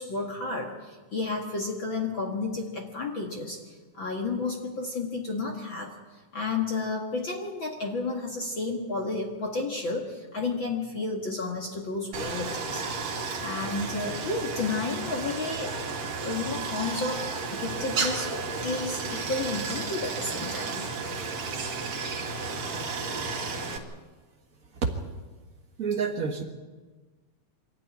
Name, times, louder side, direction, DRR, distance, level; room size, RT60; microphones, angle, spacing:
voice 1, 0.0-12.8 13.4-15.7 16.2-20.9, left 3 dB, 40° left, 1 dB, 2.0 m, -32 dB
Stream, 12.1-23.8, right 4 dB, 50° right, 3.2 m, -33 dB
voice 2, 25.8-26.4, right 5 dB, 85° right, 4 dB, 0.7 m, -27 dB
25.0 x 14.0 x 9.7 m, 1.3 s
omnidirectional pair, 4.1 m